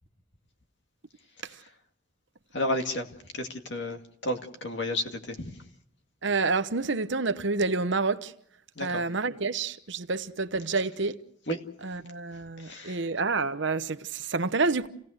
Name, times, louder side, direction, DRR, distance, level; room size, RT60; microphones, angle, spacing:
voice 1, 2.5-5.6 8.8-9.0 11.5-11.6 12.6-13.1, left 1 dB, 55° left, 2.2 m, -32 dB
voice 2, 6.2-8.3 8.8-11.2 11.8-14.9, right 3 dB, 60° right, 1.0 m, -28 dB
28.5 x 17.5 x 6.5 m
head